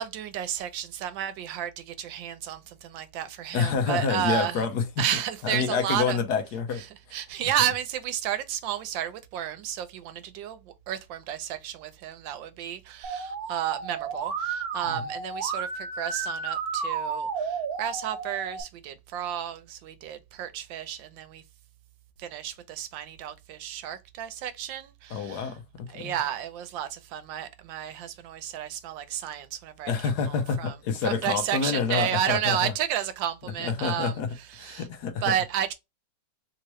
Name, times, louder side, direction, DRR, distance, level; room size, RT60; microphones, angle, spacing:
voice 1, 0.0-4.7 5.0-6.2 6.7-21.4 22.2-25.6 25.9-30.8 31.0-34.9 35.2-35.7, right 10 dB, 85° right, 1.4 m, -32 dB
voice 2, 3.5-4.8 5.4-7.2 14.8-15.0 25.1-26.2 29.9-32.7 33.6-34.3 34.6-35.3, left 6 dB, 65° left, 1.2 m, -28 dB
Musical instrument, 13.0-18.6, right 5 dB, 60° right, 1.1 m, -32 dB
3.5 x 2.9 x 3.0 m
omnidirectional pair, 2.0 m